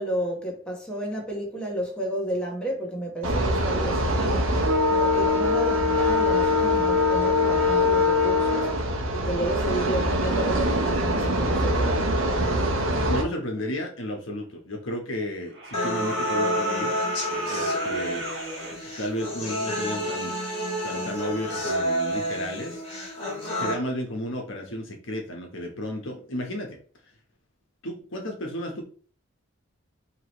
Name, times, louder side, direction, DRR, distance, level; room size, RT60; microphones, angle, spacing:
voice 1, 0.0-8.7 9.1-12.0, right 1 dB, 5° left, 1.1 m, -32 dB
sound 1, 3.2-13.2, left 1 dB, 75° right, 0.9 m, -23 dB
voice 2, 12.9-17.0 17.4-18.3 19.0-20.4 20.8-22.8 23.6-26.8 27.8-28.8, left 1 dB, 65° left, 1.1 m, -33 dB
sound 2, 14.4-14.5 15.5-18.8 20.5-20.6, equal, 50° right, 1.4 m, -33 dB
sound 3, 15.7-23.7, equal, 35° left, 1.8 m, -29 dB
4.8 x 3.0 x 3.0 m
head